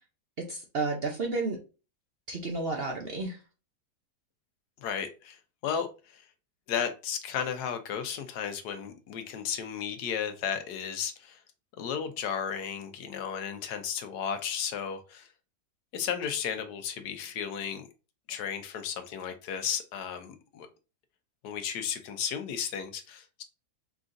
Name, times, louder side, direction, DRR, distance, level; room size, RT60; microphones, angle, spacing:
voice 1, 0.4-1.6 2.3-3.4, right 3 dB, 50° right, 0.7 m, -31 dB
voice 2, 4.8-6.3 6.7-11.4 11.8-15.3 15.9-17.9 18.3-20.7 21.4-23.4, left 8 dB, 80° left, 1.3 m, -34 dB
4.8 x 3.7 x 2.5 m
omnidirectional pair, 1.7 m